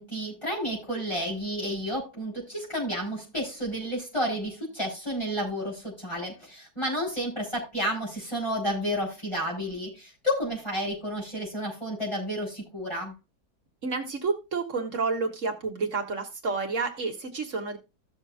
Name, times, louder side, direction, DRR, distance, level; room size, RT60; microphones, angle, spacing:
voice 1, 0.0-13.1, equal, 15° left, -4 dB, 4.9 m, -31 dB
voice 2, 13.8-17.8, right 4 dB, 50° right, 3 dB, 1.9 m, -30 dB
16.0 x 6.5 x 2.6 m, 0.26 s
omnidirectional pair, 1.7 m